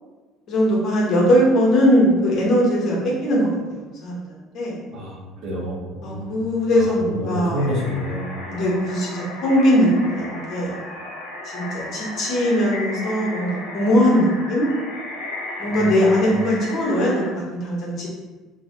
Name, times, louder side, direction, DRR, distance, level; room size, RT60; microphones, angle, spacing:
voice 1, 0.5-4.2 4.5-4.8 6.0-7.6 8.5-10.8 11.4-14.7 15.6-18.1, equal, 50° left, -4 dB, 1.2 m, -20 dB
voice 2, 4.9-6.4 6.7-8.6 15.7-16.2, equal, 55° right, -4 dB, 1.2 m, -29 dB
sound 1, 7.6-17.3, left 2 dB, 70° left, 1.0 m, -34 dB
2.7 x 2.7 x 3.6 m, 1.3 s
hypercardioid pair, 65°, 0 cm